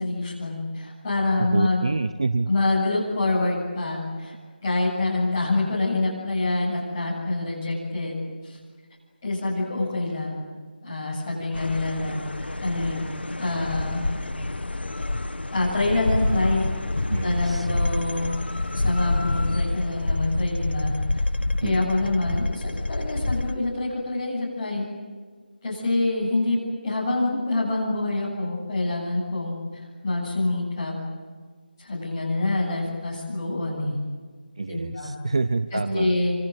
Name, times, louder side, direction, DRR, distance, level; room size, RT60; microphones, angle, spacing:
voice 1, 0.0-1.8 2.5-4.3 4.6-8.6 9.2-10.4 10.8-12.2 12.6-13.0 13.4-14.0 15.5-16.6 17.2-18.3 18.7-21.2 21.6-24.8 25.6-29.5 30.0-31.0 31.8-34.0 34.7-35.1 35.7-36.4, left 2 dB, 15° left, -7 dB, 7.9 m, -26 dB
voice 2, 1.4-2.5 17.1-17.7 21.6-21.9 34.6-36.2, right 3 dB, 35° right, 13 dB, 0.7 m, -27 dB
sound 1, 11.5-23.5, left 2 dB, 90° left, 1.4 m, -27 dB
27.0 x 27.0 x 7.8 m, 1.5 s
figure-of-eight pair, 175°, 6 cm